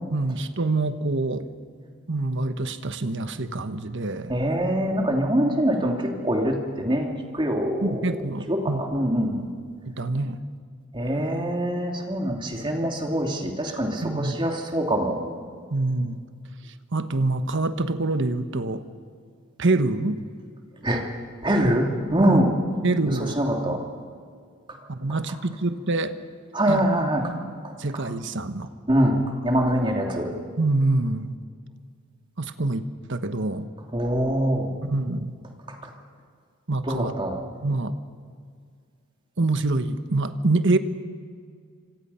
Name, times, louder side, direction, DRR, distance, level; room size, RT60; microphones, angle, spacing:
voice 1, 0.1-1.5 2.1-4.3 7.8-8.8 9.8-10.4 14.0-14.4 15.7-16.2 16.9-18.8 19.6-20.2 22.3-22.4 22.8-23.3 24.9-26.1 26.7-26.9 27.8-28.7 30.6-31.3 32.4-33.7 34.8-35.3 36.7-37.1 37.6-37.9 39.4-40.8, right 2 dB, 55° right, 10 dB, 1.2 m, -25 dB
voice 2, 4.3-7.1 7.3-8.0 8.5-9.5 10.9-15.2 20.8-21.0 21.4-22.5 23.2-23.8 26.5-27.3 28.9-29.2 29.4-30.3 33.9-34.7 35.7-35.8 36.9-37.4, right 1 dB, 20° right, 2 dB, 2.8 m, -24 dB
27.5 x 25.5 x 5.7 m, 2.1 s
head